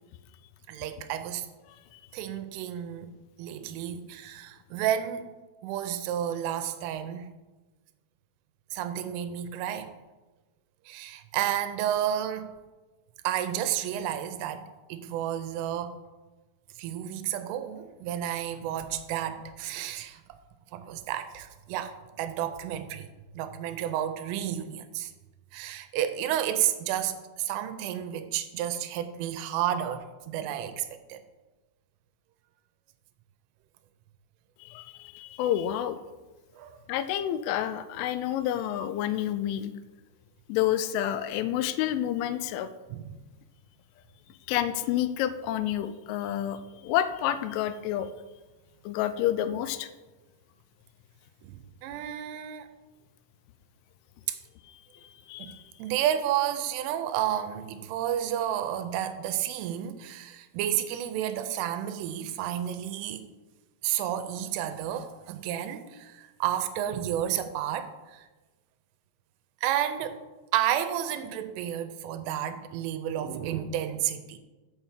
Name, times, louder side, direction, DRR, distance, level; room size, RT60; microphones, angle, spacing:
voice 1, 0.7-1.5 2.1-3.1 3.4-5.3 5.6-7.3 8.7-9.9 10.9-12.5 13.2-15.9 16.8-20.4 20.7-23.1 23.3-25.1 25.5-31.2 36.6-36.8 42.9-43.2 51.4-52.7 54.3-54.4 55.4-63.3 63.8-68.3 69.6-70.2 70.5-74.4, right 11 dB, 85° right, 10 dB, 3.2 m, -31 dB
voice 2, 34.7-36.0 36.9-39.7 40.5-42.7 44.5-46.6 46.8-48.1 48.9-49.9 55.3-55.5, left 11 dB, 85° left, 12 dB, 2.9 m, -29 dB
7.0 x 6.1 x 7.3 m, 1.2 s
omnidirectional pair, 5.6 m